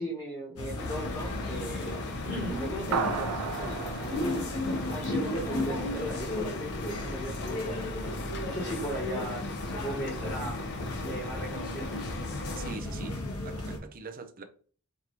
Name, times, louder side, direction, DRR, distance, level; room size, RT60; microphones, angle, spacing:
voice 1, 0.0-4.4 4.9-8.0 8.4-10.6 11.1-11.9, equal, 20° left, 1.1 m, -37 dB
sound 1, 0.6-13.8, left 1 dB, 75° left, 1.1 m, -35 dB
Truck, 0.8-12.8, left 3 dB, 55° left, 0.6 m, -40 dB
sound 2, 2.9-5.6, right 5 dB, 85° right, 0.5 m, -34 dB
voice 2, 12.6-13.2 13.4-14.4, right 4 dB, 40° right, 0.5 m, -43 dB
4.6 x 2.7 x 3.0 m
head